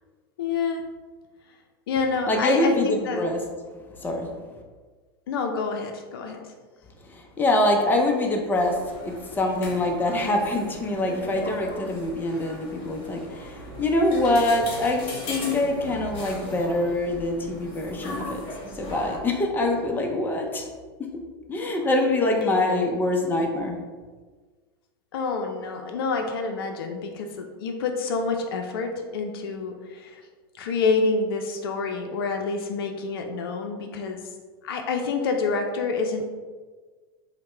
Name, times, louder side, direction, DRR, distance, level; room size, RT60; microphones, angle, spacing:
voice 1, 0.4-0.9 1.9-3.3 5.3-6.4 22.4-22.7 25.1-30.2 30.5-34.2 34.6-36.2, left 4 dB, 70° left, 4 dB, 0.5 m, -28 dB
voice 2, 2.3-3.4 4.0-4.3 7.1-8.8 9.0-18.4 18.7-20.7 21.5-23.8, left 1 dB, 15° left, 2 dB, 0.6 m, -24 dB
sound 1, 8.5-19.2, left 1 dB, 40° left, 1.4 m, -38 dB
4.6 x 2.1 x 3.3 m, 1.4 s
hypercardioid pair, 105°, 13 cm